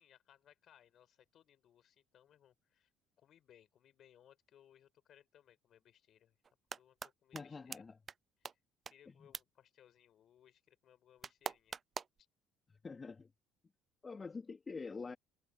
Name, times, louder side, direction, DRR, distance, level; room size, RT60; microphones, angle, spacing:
voice 1, 0.0-2.9 3.2-6.4 6.8-7.8 8.4-8.6 8.9-11.8 12.2-12.3, left 10 dB, 55° left, 5.2 m, -66 dB
sound 1, 6.4-7.1 7.3-7.4 7.7-7.8 8.1-8.2 8.4-8.5 8.9-9.0 9.3-9.4 11.2-12.2, right 6 dB, 40° right, 0.4 m, -42 dB
voice 2, 7.3-8.0 9.1-9.3 12.8-13.3 14.0-15.2, left 4 dB, 30° left, 2.7 m, -46 dB
hypercardioid pair, 65°, 0 cm